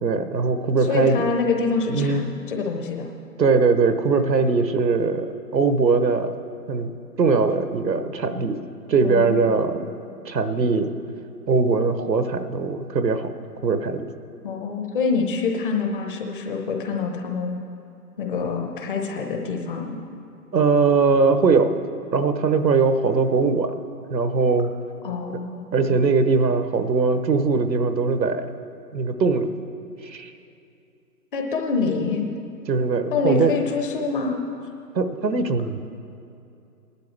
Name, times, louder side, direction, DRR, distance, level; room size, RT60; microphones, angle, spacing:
voice 1, 0.0-1.2 1.9-2.2 3.4-6.3 6.7-6.9 7.2-8.6 8.9-9.8 10.2-10.9 11.5-13.3 13.6-14.1 20.5-21.7 22.1-23.8 24.1-24.7 25.7-28.5 28.9-29.5 30.0-30.3 32.7-33.5 34.9-35.8, right 4 dB, 85° right, 9 dB, 1.1 m, -21 dB
voice 2, 0.9-3.1 9.0-9.8 14.4-17.6 18.2-20.0 25.0-26.0 31.3-32.2 33.1-34.4, left 4 dB, 30° left, 3 dB, 1.0 m, -26 dB
19.0 x 11.5 x 3.3 m, 2.6 s
figure-of-eight pair, 145°, 49 cm